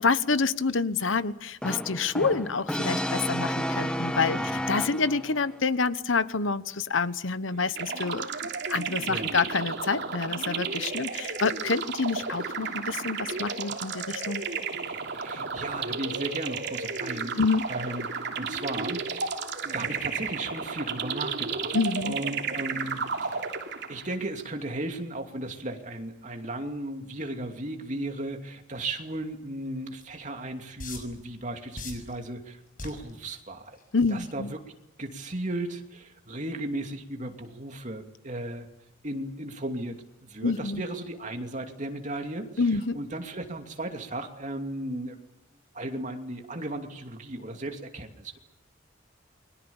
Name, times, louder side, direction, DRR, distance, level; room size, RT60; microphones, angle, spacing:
voice 1, 0.0-14.4 17.4-17.7 21.7-22.2 33.9-34.5 40.4-40.8 42.6-43.0, left 4 dB, 80° left, 14 dB, 1.1 m, -27 dB
Brass instrument, 1.6-5.4, equal, 5° left, 1.3 m, -31 dB
sound 1, 7.8-24.1, right 5 dB, 60° right, 3.1 m, -33 dB
voice 2, 15.1-17.4 17.7-18.1 18.4-21.8 22.0-23.5 23.9-33.8 34.1-34.6 35.0-38.7 39.0-42.6 42.9-45.2 45.7-48.4, right 1 dB, 40° right, 4 dB, 2.8 m, -35 dB
sound 2, 30.0-30.1 30.8-31.2 31.8-32.1 32.8-33.1 33.8-34.0, left 3 dB, 45° left, 6.4 m, -37 dB
29.5 x 22.5 x 7.2 m, 0.85 s
head